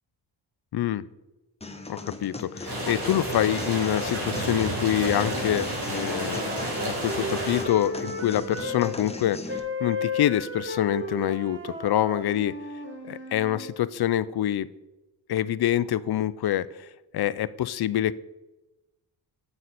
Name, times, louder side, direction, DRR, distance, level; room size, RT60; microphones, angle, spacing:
voice 1, 0.7-1.0 1.9-12.6 13.0-14.7 15.3-16.7 17.1-18.1, left 12 dB, 50° left, 18 dB, 0.5 m, -26 dB
sound 1, 1.6-9.6, left 3 dB, 15° left, 0.9 m, -39 dB
sound 2, 2.6-7.6, right 1 dB, 55° right, 3.8 m, -30 dB
sound 3, 4.8-8.9 9.5-13.7, left 2 dB, 25° right, 2.9 m, -35 dB
9.3 x 7.9 x 4.1 m, 1.0 s
cardioid pair, 85°, 49 cm